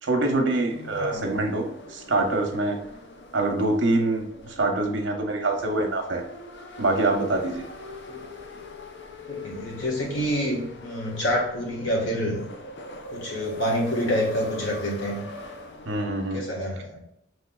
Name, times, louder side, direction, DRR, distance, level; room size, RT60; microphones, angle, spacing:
voice 1, 0.0-2.8 3.3-6.2 6.8-7.7 15.9-16.4, right 2 dB, 80° right, 3 dB, 0.9 m, -25 dB
sound 1, 0.7-16.4, left 2 dB, 65° left, 0.5 m, -42 dB
voice 2, 0.9-1.3 8.1-8.2 9.3-12.4 13.1-15.2 16.3-17.0, equal, 85° left, -1 dB, 1.4 m, -27 dB
5.8 x 3.2 x 2.3 m, 0.77 s
head